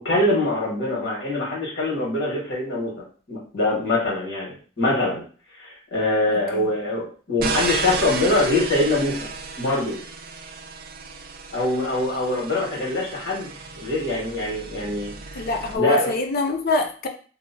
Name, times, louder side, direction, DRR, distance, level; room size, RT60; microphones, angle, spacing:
voice 1, 0.0-2.9 3.3-5.2 5.6-9.2 9.6-10.0 11.5-13.5 13.8-15.1 15.8-16.1, left 2 dB, 90° left, -4 dB, 1.4 m, -23 dB
voice 2, 6.3-6.7 15.3-17.1, left 3 dB, 55° left, 4 dB, 0.5 m, -25 dB
sound 1, 7.4-15.8, right 4 dB, 50° right, 0.4 m, -33 dB
2.7 x 2.1 x 2.6 m, 0.40 s
head